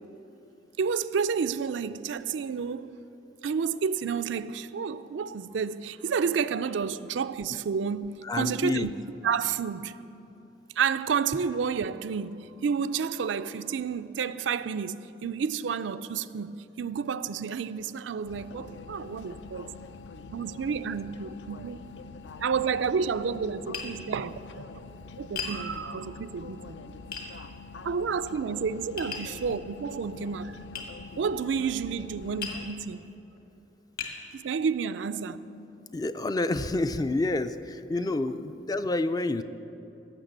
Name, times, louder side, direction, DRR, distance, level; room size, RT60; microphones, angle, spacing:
voice 1, 0.8-2.9 3.4-8.9 9.2-9.9 10.8-12.4 12.6-19.7 20.3-21.9 22.4-24.8 25.2-26.8 27.8-30.6 31.2-33.1 34.3-35.4, right 6 dB, 85° right, 0.4 m, -30 dB
voice 2, 8.2-8.9 35.9-39.4, left 2 dB, 20° left, 0.3 m, -28 dB
sound 1, 18.2-32.7, left 4 dB, 70° left, 0.5 m, -45 dB
Tap, 23.7-23.9 25.4-25.6 27.1-27.3 29.0-29.3 30.7-30.9 32.4-32.6 33.3-33.4 34.0-34.2, left 5 dB, 55° left, 1.9 m, -35 dB
16.0 x 6.7 x 7.9 m
head